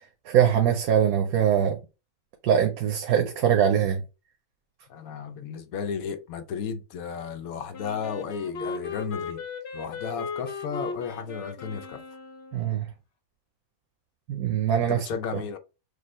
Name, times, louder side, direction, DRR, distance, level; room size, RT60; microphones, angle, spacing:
voice 1, 0.3-1.8 2.4-4.0 12.5-12.9 14.3-15.0, right 9 dB, 85° right, 1.2 m, -22 dB
voice 2, 4.9-9.4 9.7-12.0 14.8-15.6, left 6 dB, 75° left, 1.1 m, -34 dB
Wind instrument woodwind instrument, 7.7-12.8, left 4 dB, 50° left, 1.0 m, -37 dB
6.5 x 2.4 x 3.1 m
omnidirectional pair, 1.5 m